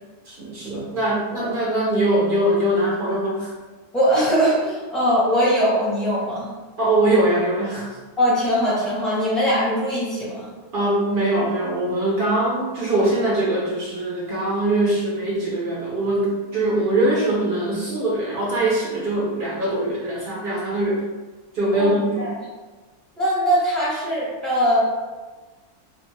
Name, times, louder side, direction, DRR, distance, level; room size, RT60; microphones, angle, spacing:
voice 1, 0.3-3.5 6.8-7.9 10.7-21.0 21.5-22.2, right 1 dB, 60° right, -6 dB, 0.5 m, -22 dB
voice 2, 3.9-6.5 8.2-10.5 21.7-21.9 22.2-22.3 23.2-24.8, equal, ahead, -9 dB, 0.6 m, -21 dB
2.4 x 2.4 x 3.1 m, 1.3 s
omnidirectional pair, 1.6 m